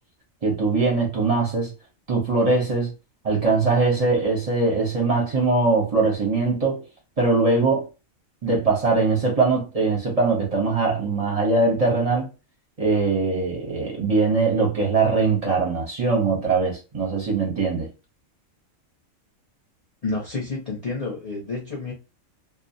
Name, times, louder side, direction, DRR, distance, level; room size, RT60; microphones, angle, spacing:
voice 1, 0.4-1.7 2.1-2.9 3.2-6.8 7.2-7.9 8.4-12.3 12.8-17.9, right 3 dB, 40° right, 0.6 m, -21 dB
voice 2, 20.0-21.9, left 3 dB, 40° left, 0.6 m, -29 dB
2.4 x 2.0 x 2.6 m
omnidirectional pair, 1.4 m